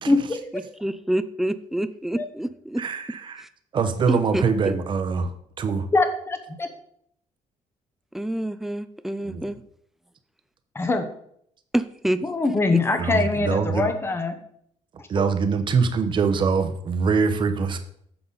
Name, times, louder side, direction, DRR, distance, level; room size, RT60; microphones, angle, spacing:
voice 1, 0.5-2.8 3.4-3.5 4.1-4.8 8.1-9.6 11.7-12.2 12.7-12.8, right 1 dB, 5° right, 12 dB, 0.4 m, -27 dB
voice 2, 2.8-3.4 3.7-5.3 5.6-5.8 9.2-9.4 13.0-13.9 15.1-17.8, right 5 dB, 35° right, 8 dB, 0.9 m, -23 dB
voice 3, 5.9-6.7 10.7-11.1 12.2-14.3 15.2-15.3, left 3 dB, 20° left, 8 dB, 1.0 m, -23 dB
9.6 x 6.8 x 4.0 m, 0.68 s
cardioid pair, 170°, 13 cm